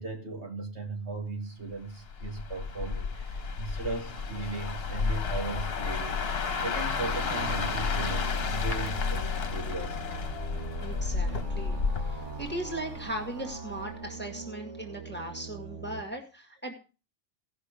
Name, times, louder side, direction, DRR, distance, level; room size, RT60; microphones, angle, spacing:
voice 1, 0.0-10.0, right 3 dB, 65° right, 2 dB, 2.4 m, -37 dB
sound 1, 2.1-13.2 13.5-13.8, left 5 dB, 55° left, 1.2 m, -31 dB
sound 2, 7.0-16.0, right 5 dB, 80° right, 1.9 m, -42 dB
voice 2, 10.8-16.7, right 1 dB, 10° left, 1 dB, 1.8 m, -38 dB
17.0 x 6.0 x 5.0 m, 0.34 s
omnidirectional pair, 1.2 m